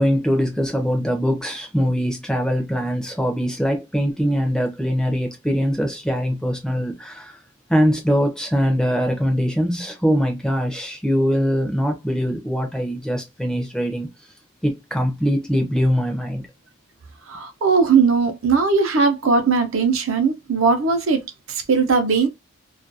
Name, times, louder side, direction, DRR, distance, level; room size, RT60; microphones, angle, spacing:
voice 1, 0.0-7.4 7.7-14.1 14.6-16.4, equal, 5° left, 0.4 m, -22 dB
voice 2, 17.3-21.2 21.5-22.3, right 5 dB, 70° right, 0.6 m, -19 dB
2.3 x 2.2 x 2.6 m
head